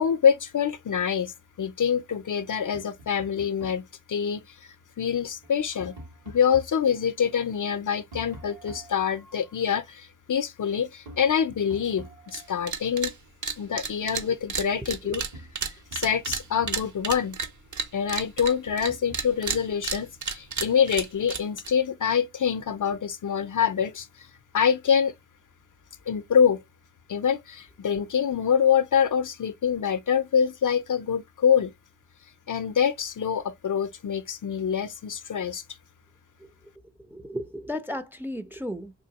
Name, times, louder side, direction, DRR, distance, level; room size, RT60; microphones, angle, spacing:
voice 1, 0.0-3.8 4.1-5.9 6.3-13.1 13.6-15.2 15.9-17.4 17.9-24.3 24.5-25.1 26.1-26.6 27.1-31.7 32.5-35.6, left 7 dB, 45° left, 0.6 m, -25 dB
Tap, 2.7-3.9 5.3-6.8 8.1-9.5 11.0-12.6 14.4-14.5 14.9-17.1 18.6-19.3, right 1 dB, 70° right, 2.4 m, -46 dB
sound 1, 12.3-12.4 12.7-13.1 13.4-18.9 19.1-21.7, right 6 dB, 40° right, 0.8 m, -31 dB
voice 2, 37.1-38.9, left 1 dB, 5° right, 0.6 m, -34 dB
3.7 x 2.5 x 2.9 m
supercardioid pair, 50°, 43 cm